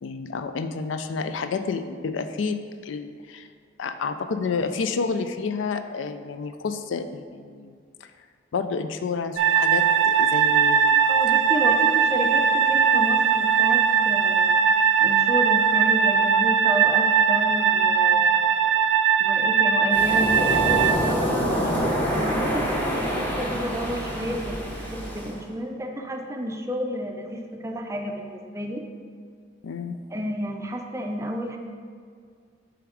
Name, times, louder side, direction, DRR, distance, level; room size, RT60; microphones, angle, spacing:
voice 1, 0.0-3.5 3.8-7.7 8.0-8.1 8.5-11.0 11.6-11.7 29.6-30.0, left 4 dB, 75° left, 9 dB, 0.4 m, -30 dB
sound 1, 9.4-20.9, right 7 dB, 75° right, 0.4 m, -20 dB
voice 2, 11.1-14.6 15.0-18.5 19.2-28.8 30.1-31.6, equal, 15° right, 3 dB, 0.5 m, -31 dB
Waves surf, 19.9-25.4, equal, 10° left, 1.0 m, -26 dB
7.0 x 3.5 x 4.8 m, 2.1 s
head